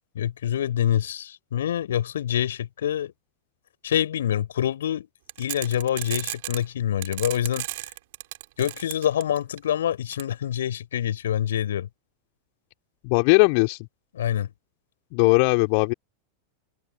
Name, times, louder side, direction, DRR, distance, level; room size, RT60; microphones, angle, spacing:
voice 1, 0.1-3.1 3.8-5.1 5.4-7.6 8.6-11.9 14.2-14.5, left 10 dB, 60° left, 4.6 m, -26 dB
sound 1, 5.3-6.6 7.0-9.6 10.1-10.2, right 19 dB, 50° right, 7.5 m, -33 dB
voice 2, 13.0-13.9 15.1-15.9, left 35 dB, 45° left, 3.1 m, -19 dB
open air
figure-of-eight pair, 90°, 0 cm